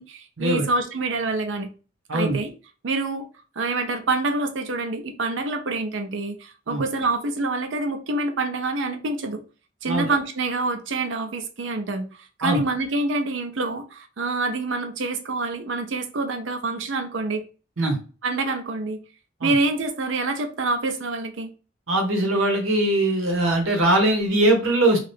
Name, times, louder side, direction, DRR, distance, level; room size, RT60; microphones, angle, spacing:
voice 1, 0.0-1.7 2.1-2.5 2.8-3.3 3.6-9.4 9.8-17.4 18.2-19.0 19.4-21.5, right 3 dB, 65° right, 0.6 m, -26 dB
voice 2, 9.9-10.2 12.4-12.6 17.8-18.0 19.4-19.5 21.9-25.1, right 1 dB, 90° right, 1.0 m, -21 dB
2.8 x 2.4 x 3.3 m
head